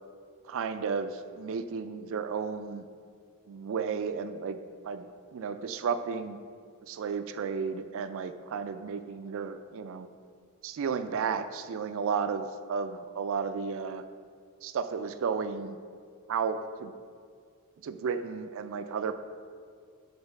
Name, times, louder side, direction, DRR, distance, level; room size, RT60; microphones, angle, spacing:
voice 1, 0.5-2.9 3.5-6.4 6.8-10.1 10.6-14.0 14.6-15.8 16.3-17.0 17.8-19.1, right 6 dB, 60° right, 11 dB, 0.3 m, -33 dB
6.9 x 3.9 x 5.3 m, 2.1 s
head